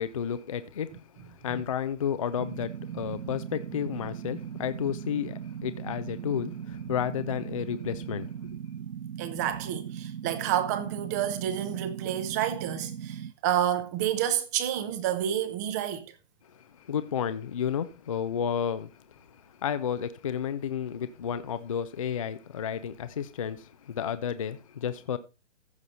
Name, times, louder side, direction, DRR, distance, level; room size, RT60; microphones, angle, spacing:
voice 1, 0.0-8.3 16.5-25.2, left 8 dB, 30° left, 0.4 m, -32 dB
sound 1, 2.4-13.3, right 8 dB, 85° right, 0.6 m, -39 dB
voice 2, 9.2-16.1, right 10 dB, 15° right, 0.6 m, -29 dB
14.5 x 5.3 x 4.1 m
hypercardioid pair, 145°, 36 cm